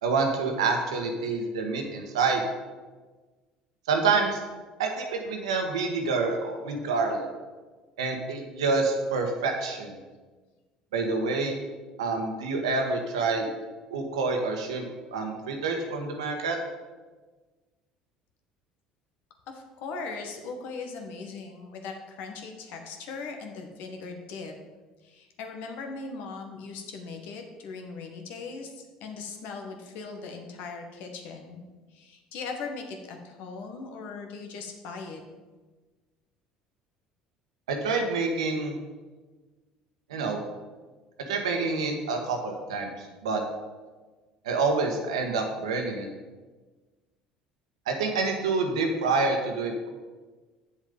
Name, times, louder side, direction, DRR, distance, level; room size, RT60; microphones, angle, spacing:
voice 1, 0.0-2.4 3.9-4.4 4.8-7.3 8.0-10.0 10.9-11.6 12.0-13.5 13.9-14.9 15.1-16.6 37.7-38.8 40.1-40.4 41.3-43.4 44.4-46.1 47.9-49.9, right 4 dB, 85° right, 3 dB, 1.4 m, -27 dB
voice 2, 19.5-24.5 25.0-31.6 31.9-35.2, left 4 dB, 65° left, 4 dB, 1.6 m, -39 dB
8.2 x 7.1 x 5.2 m, 1.3 s
hypercardioid pair, 70°, 3 cm